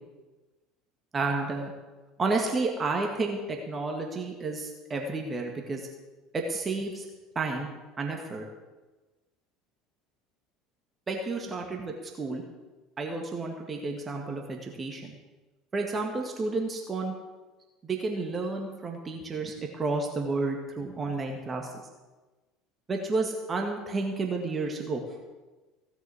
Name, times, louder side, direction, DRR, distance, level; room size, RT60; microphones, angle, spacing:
voice 1, 1.1-1.7 2.2-5.9 6.3-7.1 7.4-7.7 8.0-8.5 11.1-12.4 13.0-15.1 15.7-17.1 17.8-21.7 22.9-25.0, right 3 dB, 25° right, 2 dB, 2.0 m, -31 dB
16.5 x 7.0 x 8.5 m, 1.2 s
figure-of-eight pair, 65°, 0 cm